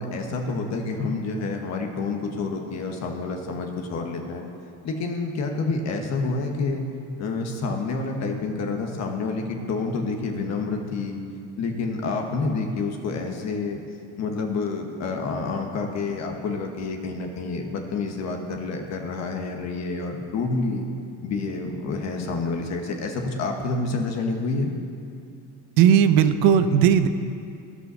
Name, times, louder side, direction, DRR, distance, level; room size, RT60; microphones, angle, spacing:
voice 1, 0.0-4.4 4.8-6.8 7.2-11.2 11.6-13.8 14.2-20.9 21.2-24.7, left 3 dB, 50° left, 3 dB, 1.3 m, -28 dB
voice 2, 25.8-27.1, right 8 dB, 80° right, 11 dB, 0.7 m, -17 dB
13.5 x 5.6 x 6.2 m, 2.4 s
cardioid pair, 130°, 34 cm